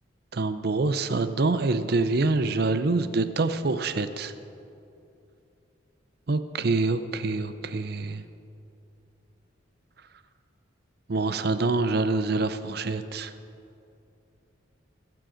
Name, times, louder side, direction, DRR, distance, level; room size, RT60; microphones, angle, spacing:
voice 1, 0.3-4.3 6.3-8.2 11.1-13.3, right 3 dB, 50° right, 11 dB, 0.6 m, -26 dB
21.0 x 7.8 x 5.0 m, 2.7 s
head